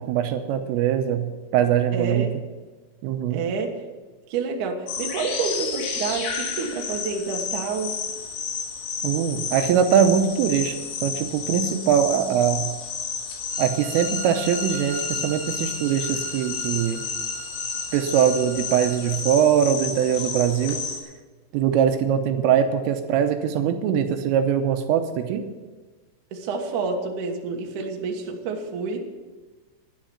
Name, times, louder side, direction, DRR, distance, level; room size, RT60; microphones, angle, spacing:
voice 1, 0.0-2.3 3.0-3.4 9.0-12.7 13.6-17.0 17.9-20.8 21.5-25.4, right 9 dB, 80° right, 7 dB, 3.3 m, -22 dB
voice 2, 1.9-2.3 3.3-3.8 4.3-8.0 26.3-29.0, right 4 dB, 65° right, 1 dB, 2.0 m, -28 dB
sound 1, 4.9-21.0, left 5 dB, 85° left, 4.5 m, -31 dB
sound 2, 13.5-19.3, right 2 dB, 40° right, 4.0 m, -39 dB
12.0 x 11.0 x 7.1 m, 1.3 s
omnidirectional pair, 6.0 m